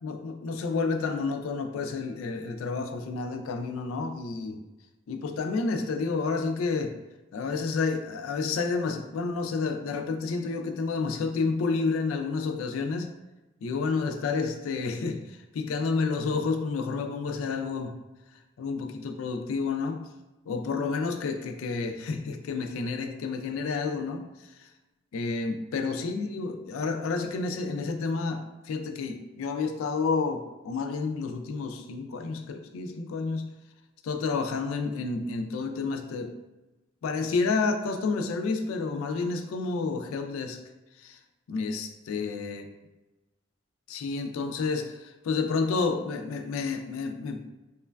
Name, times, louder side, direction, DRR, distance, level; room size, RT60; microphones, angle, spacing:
voice 1, 0.0-4.6 5.1-7.0 7.3-13.1 13.6-18.0 18.6-20.0 20.5-24.3 24.6-24.7 25.1-33.5 34.0-36.3 37.0-40.6 41.0-41.2 41.5-42.6 43.9-47.4, left 4 dB, 85° left, 6 dB, 0.3 m, -30 dB
3.0 x 2.2 x 2.2 m, 1.1 s
head